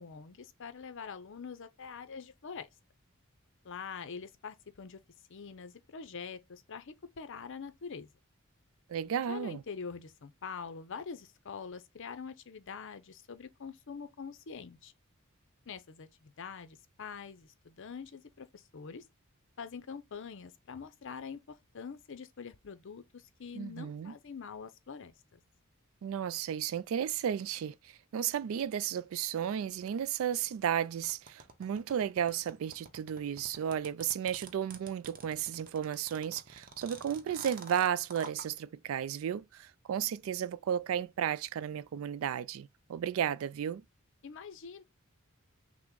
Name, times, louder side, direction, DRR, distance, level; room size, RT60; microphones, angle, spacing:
voice 1, 0.0-2.7 3.6-5.0 5.3-8.1 9.3-14.9 15.7-19.0 19.6-25.4 44.2-44.8, left 6 dB, 60° left, 0.6 m, -45 dB
voice 2, 8.9-9.6 23.5-24.1 26.0-43.8, right 9 dB, 70° right, 0.3 m, -34 dB
sound 1, 31.0-38.5, right 4 dB, 40° right, 0.8 m, -47 dB
5.9 x 2.1 x 3.7 m
head